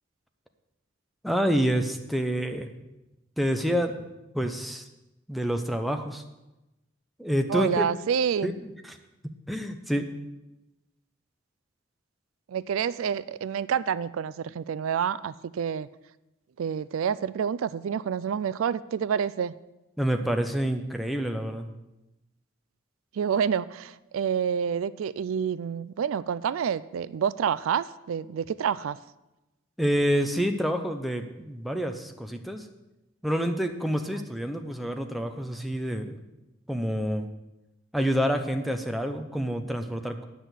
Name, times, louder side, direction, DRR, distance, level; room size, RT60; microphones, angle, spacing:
voice 1, 1.2-2.7 3.4-4.0 4.3-4.8 5.3-6.2 7.2-7.9 8.4-9.0 9.5-10.1 20.0-21.7 29.8-32.7 33.2-36.2 36.7-37.3 37.9-40.2, equal, ahead, 4 dB, 0.6 m, -28 dB
voice 2, 7.5-8.5 12.5-15.9 16.6-19.5 23.1-29.0, right 7 dB, 90° right, 17 dB, 0.3 m, -28 dB
9.3 x 6.1 x 8.0 m, 1.0 s
head